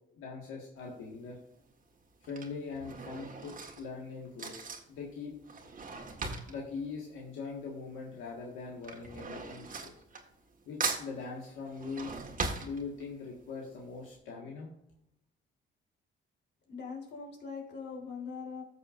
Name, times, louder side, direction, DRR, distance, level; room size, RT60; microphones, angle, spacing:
voice 1, 0.1-1.4 2.2-5.3 6.5-9.9 10.6-12.1 12.6-14.7, left 4 dB, 90° left, -2 dB, 1.7 m, -42 dB
Drawer open or close / Cutlery silverware, 0.8-1.2 2.0-7.9 8.2-10.5 10.8-13.3 13.7-13.8 14.1-14.2, right 4 dB, 40° right, 1.6 m, -40 dB
voice 2, 16.7-18.6, left 5 dB, 60° left, 0 dB, 3.3 m, -41 dB
14.0 x 6.7 x 2.5 m, 0.80 s
cardioid pair, 90°, 20 cm